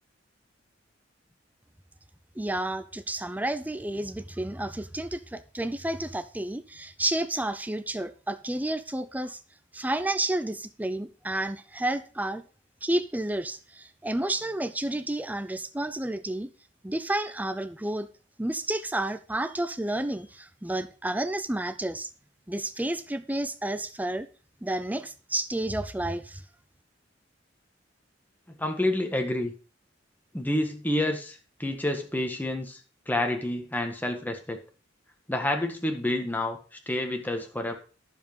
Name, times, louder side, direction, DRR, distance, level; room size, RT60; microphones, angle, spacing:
voice 1, 2.4-9.4 9.7-12.4 12.8-16.5 16.8-18.1 18.4-22.1 22.5-24.3 24.6-26.4, right 1 dB, 10° right, 0.6 m, -31 dB
voice 2, 28.5-29.5 30.3-32.8 33.1-34.6 35.3-36.6 36.9-37.8, left 1 dB, 10° left, 1.8 m, -29 dB
11.0 x 7.4 x 5.2 m
head